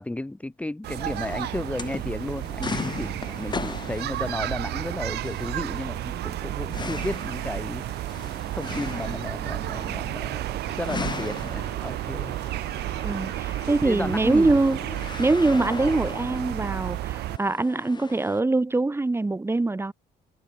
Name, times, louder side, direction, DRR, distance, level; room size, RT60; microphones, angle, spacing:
voice 1, 0.0-7.8 8.5-12.4 13.7-14.6, left 1 dB, 10° left, 1.2 m, -33 dB
sound 1, 0.8-17.4, right 16 dB, 80° right, 6.2 m, -32 dB
sound 2, 0.9-18.4, left 4 dB, 25° left, 3.4 m, -39 dB
voice 2, 13.0-14.8 15.2-19.9, right 2 dB, 15° right, 3.7 m, -23 dB
cardioid pair, 110°, 17 cm